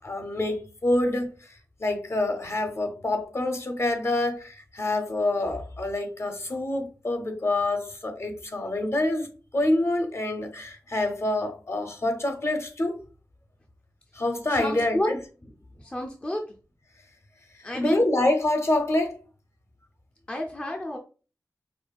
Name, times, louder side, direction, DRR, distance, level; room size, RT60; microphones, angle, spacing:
voice 1, 0.0-12.9 14.1-15.1 17.7-19.2, left 1 dB, 45° left, 0.7 m, -26 dB
voice 2, 14.5-15.2 15.8-16.4 17.6-18.0 20.3-21.0, left 1 dB, 15° left, 0.4 m, -30 dB
5.0 x 2.4 x 2.2 m
wide cardioid pair, 100°, 7 cm